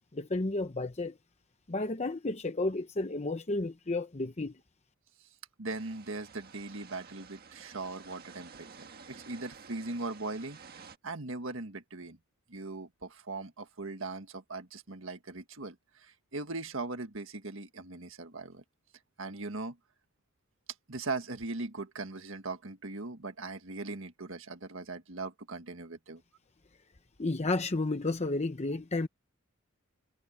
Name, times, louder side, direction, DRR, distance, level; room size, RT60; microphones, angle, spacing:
voice 1, 0.1-1.1 1.7-4.5 27.2-29.1, left 2 dB, 30° left, 0.8 m, -32 dB
voice 2, 5.6-12.2 12.5-18.6 19.2-19.8 20.9-26.2, right 3 dB, 65° right, 1.8 m, -40 dB
sound 1, 5.7-11.0, right 5 dB, 45° right, 1.6 m, -52 dB
head